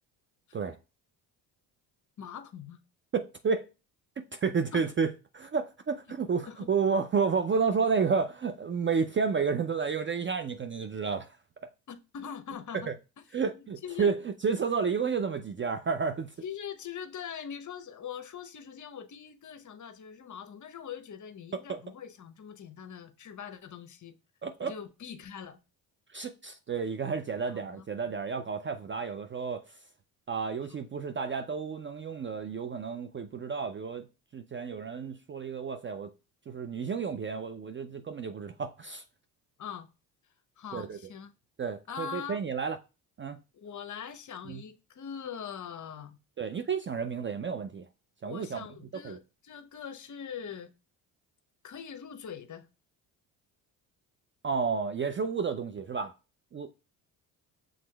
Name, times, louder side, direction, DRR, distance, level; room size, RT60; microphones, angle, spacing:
voice 1, 2.2-2.8 4.7-4.9 6.5-6.7 11.9-12.9 13.8-14.2 16.4-24.2 24.6-25.6 27.7-27.8 39.6-39.9 40.6-41.3 41.9-42.4 43.5-46.2 48.2-50.7 51.6-52.7, left 8 dB, 40° left, 0.8 m, -42 dB
voice 2, 3.1-3.7 4.2-11.4 11.6-11.7 12.9-13.0 13.3-16.3 21.5-21.8 24.4-24.7 26.1-29.8 30.3-34.1 34.3-36.1 36.5-39.0 40.7-41.0 41.6-42.8 43.2-43.4 44.5-44.6 46.4-47.9 48.2-48.6 49.0-49.2 54.4-56.1 56.5-56.7, right 5 dB, 25° right, 0.4 m, -31 dB
6.0 x 3.7 x 2.2 m
hypercardioid pair, 60°, 48 cm